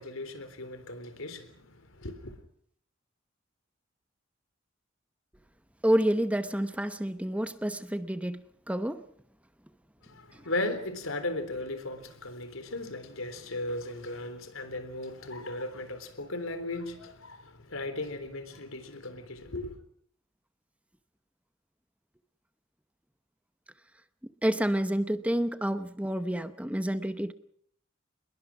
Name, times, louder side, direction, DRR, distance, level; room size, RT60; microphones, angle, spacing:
voice 1, 0.0-2.3 10.1-19.7, left 2 dB, 85° left, 3.7 m, -37 dB
voice 2, 5.8-8.4 8.7-9.0 24.4-27.3, right 1 dB, 5° right, 0.8 m, -28 dB
27.0 x 21.5 x 6.1 m
head